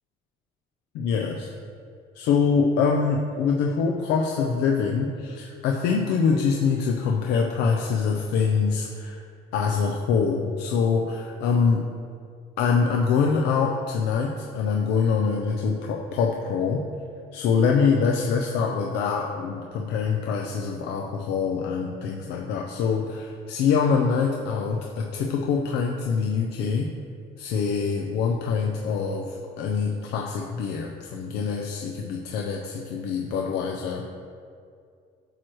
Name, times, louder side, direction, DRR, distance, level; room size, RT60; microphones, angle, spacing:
voice 1, 0.9-1.5 2.2-9.2 9.5-11.8 12.6-16.8 17.3-26.9 27.4-34.1, left 5 dB, 85° left, 1 dB, 0.6 m, -24 dB
8.8 x 3.1 x 6.2 m, 2.3 s
cardioid pair, 110°, 17 cm